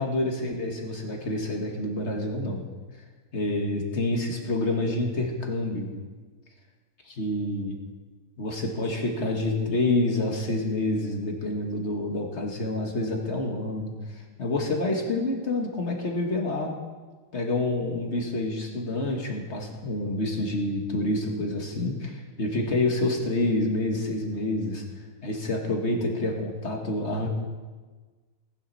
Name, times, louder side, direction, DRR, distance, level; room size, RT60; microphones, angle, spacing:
voice 1, 0.0-2.6 3.3-5.9 7.1-7.8 8.4-16.8 17.3-24.8 25.2-27.3, left 2 dB, 35° left, 1 dB, 1.8 m, -28 dB
18.0 x 10.5 x 4.2 m, 1.4 s
omnidirectional pair, 2.3 m